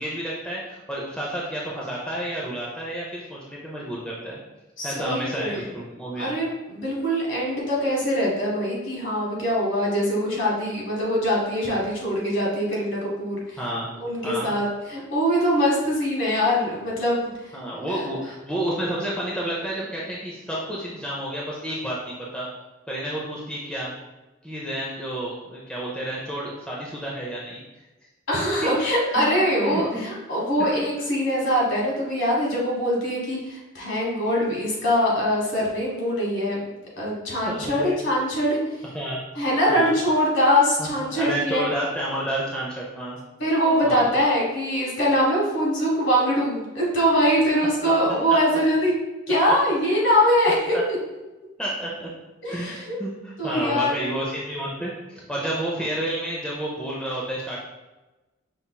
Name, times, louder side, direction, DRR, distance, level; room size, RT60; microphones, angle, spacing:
voice 1, 0.0-4.4 4.8-6.3 13.6-13.9 14.2-14.5 17.5-22.5 22.9-23.9 24.4-27.6 28.6-29.3 29.6-30.0 30.6-30.7 37.4-38.0 38.9-39.2 39.7-39.9 40.8-43.2 43.8-44.0 48.3-48.6 50.7-50.8 51.6-52.1 52.4-57.6, right 1 dB, 5° left, -5 dB, 0.5 m, -30 dB
voice 2, 4.8-5.7 6.2-13.6 14.0-17.5 17.9-18.0 28.3-36.6 37.0-38.6 39.3-41.6 43.4-48.9 49.3-51.0 52.4-52.9 53.4-54.1, equal, 55° left, -4 dB, 1.3 m, -23 dB
5.4 x 3.4 x 2.2 m, 1.1 s
head